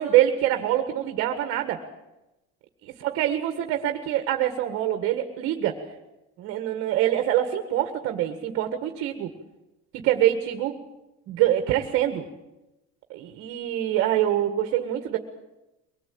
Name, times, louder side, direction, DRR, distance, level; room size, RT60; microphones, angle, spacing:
voice 1, 0.0-1.8 2.8-5.8 6.4-9.3 10.0-10.7 11.3-12.3 13.1-15.2, right 12 dB, 45° right, 7 dB, 1.7 m, -25 dB
23.0 x 20.0 x 8.6 m, 0.98 s
cardioid pair, 180°, 30 cm